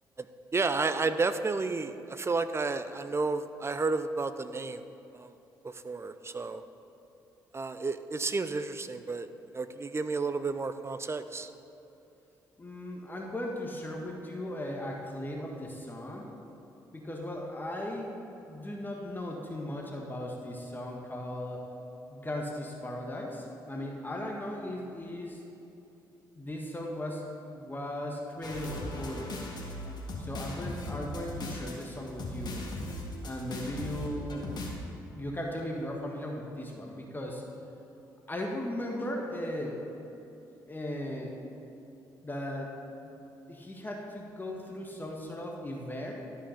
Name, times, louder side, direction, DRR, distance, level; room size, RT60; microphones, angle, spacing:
voice 1, 0.5-4.8 5.1-5.3 5.8-6.6 7.5-9.3 9.5-11.5, right 3 dB, 25° right, 11 dB, 0.6 m, -31 dB
voice 2, 12.6-16.3 16.9-18.1 18.5-21.6 22.1-25.4 26.3-29.4 30.2-32.7 33.2-34.5 35.1-37.4 38.3-39.8 40.7-41.3 42.2-43.1 43.5-46.1, left 1 dB, 20° left, 0 dB, 1.5 m, -37 dB
sound 1, 28.4-34.7, left 1 dB, 50° left, 1.9 m, -38 dB
12.5 x 5.6 x 5.2 m, 2.9 s
hypercardioid pair, 45°, 10 cm